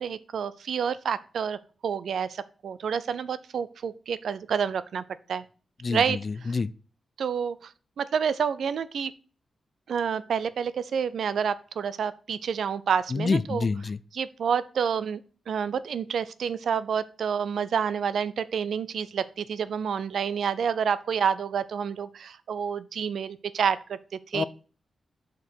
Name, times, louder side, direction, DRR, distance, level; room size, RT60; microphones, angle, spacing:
voice 1, 0.0-5.0 5.3-5.4 5.9-6.2 7.2-7.7 8.0-9.1 9.9-13.7 14.1-15.2 15.5-24.5, right 7 dB, 70° right, 0.5 m, -28 dB
voice 2, 5.8-6.7 13.1-14.0 24.3-24.4, left 4 dB, 35° left, 0.3 m, -27 dB
6.6 x 5.2 x 4.5 m
wide cardioid pair, 135°, 0 cm